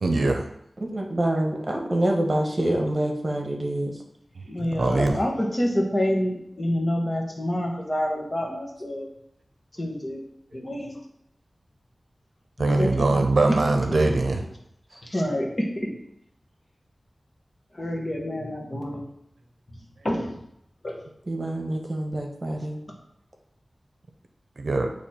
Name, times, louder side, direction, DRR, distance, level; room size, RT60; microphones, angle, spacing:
voice 1, 0.0-0.4 4.4-4.5 4.8-5.2 12.6-14.4 24.6-24.9, right 2 dB, 80° right, 4 dB, 0.7 m, -22 dB
voice 2, 0.9-3.9 21.3-22.8, right 1 dB, 45° right, 1 dB, 1.2 m, -26 dB
voice 3, 4.5-9.1 9.8-10.2 10.5-11.0 12.6-13.2 13.5-13.6 15.0-15.9 17.7-19.0 20.0-20.4 20.8-21.0, left 1 dB, 35° left, -1 dB, 1.4 m, -27 dB
8.4 x 3.1 x 4.3 m, 0.77 s
wide cardioid pair, 85°, 0 cm